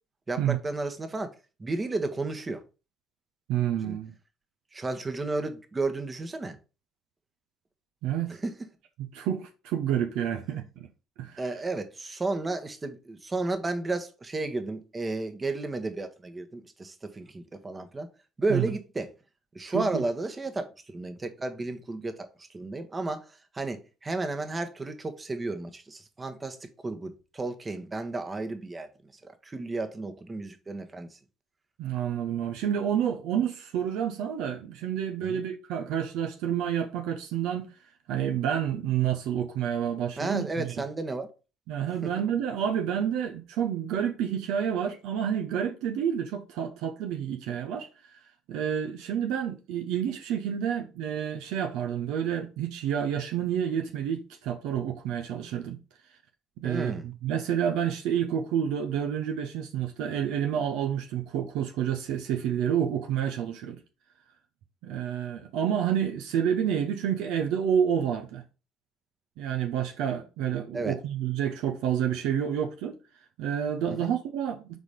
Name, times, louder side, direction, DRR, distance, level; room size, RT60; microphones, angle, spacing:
voice 1, 0.3-1.3 1.6-2.6 3.8-4.0 4.7-6.6 8.3-8.5 11.4-18.1 18.4-19.1 19.5-26.6 26.8-28.9 29.2-31.2 35.2-35.4 40.2-41.3 42.0-42.1 56.6-57.0 70.7-70.9 73.9-74.1, right 2 dB, 25° right, 1.2 m, -33 dB
voice 2, 3.5-4.1 8.0-8.4 9.0-10.9 11.2-11.4 18.5-18.7 19.7-20.0 31.8-37.7 38.1-40.7 41.7-47.9 48.5-55.8 56.6-63.8 64.8-68.4 69.4-73.0 73.4-74.8, right 9 dB, 65° right, 0.7 m, -29 dB
4.8 x 4.1 x 5.1 m
hypercardioid pair, 55°, 0 cm